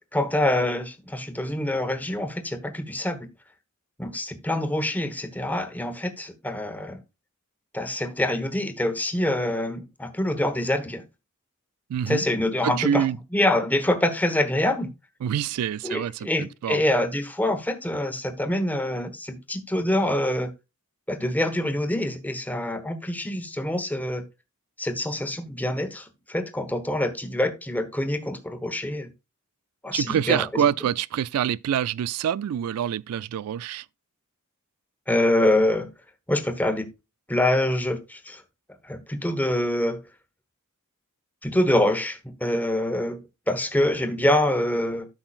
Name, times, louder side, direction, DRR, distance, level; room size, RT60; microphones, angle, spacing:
voice 1, 0.1-3.3 4.0-7.0 7.7-11.0 12.1-13.1 13.3-14.9 15.8-20.5 21.1-24.2 24.8-29.1 29.8-30.7 35.1-35.9 36.3-36.9 37.3-38.4 38.8-40.0 41.4-45.1, left 1 dB, 10° left, 1.1 m, -25 dB
voice 2, 11.9-12.3 12.6-13.2 15.2-16.8 29.9-33.9, right 9 dB, 80° right, 0.3 m, -26 dB
12.5 x 5.7 x 2.4 m
head